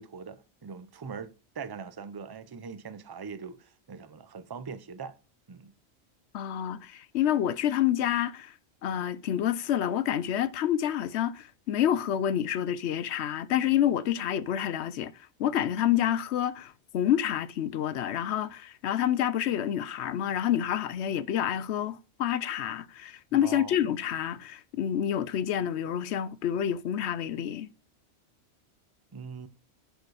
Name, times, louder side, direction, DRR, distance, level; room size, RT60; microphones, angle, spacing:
voice 1, 0.0-5.2 5.5-5.7 15.7-15.9 23.3-23.8 29.1-29.5, right 5 dB, 30° right, 0.5 m, -42 dB
voice 2, 6.3-8.5 8.8-15.1 15.4-27.7, left 10 dB, 75° left, 0.8 m, -28 dB
10.5 x 5.0 x 4.8 m
omnidirectional pair, 1.2 m